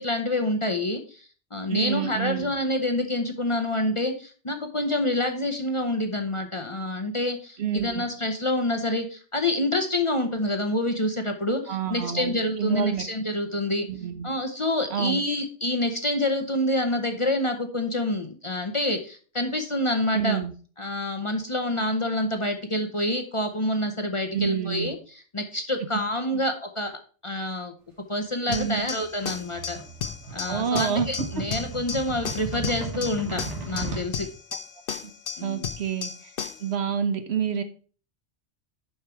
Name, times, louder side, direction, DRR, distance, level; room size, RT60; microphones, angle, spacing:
voice 1, 0.0-13.9 14.2-20.4 20.8-27.7 28.1-29.8 30.3-34.3 35.4-35.7, left 1 dB, 30° left, 5 dB, 0.8 m, -27 dB
voice 2, 1.7-2.5 7.6-8.1 11.7-13.0 13.9-14.3 14.9-15.2 20.1-20.5 24.3-24.9 28.5-28.9 30.3-31.1 35.0-35.1 35.4-36.1 36.6-37.6, right 7 dB, 65° right, 9 dB, 1.1 m, -28 dB
sound 1, 28.5-36.7, left 6 dB, 55° left, 1.0 m, -35 dB
sound 2, 28.5-34.1, right 4 dB, 85° right, 2.1 m, -36 dB
7.3 x 5.6 x 4.5 m, 0.39 s
omnidirectional pair, 1.2 m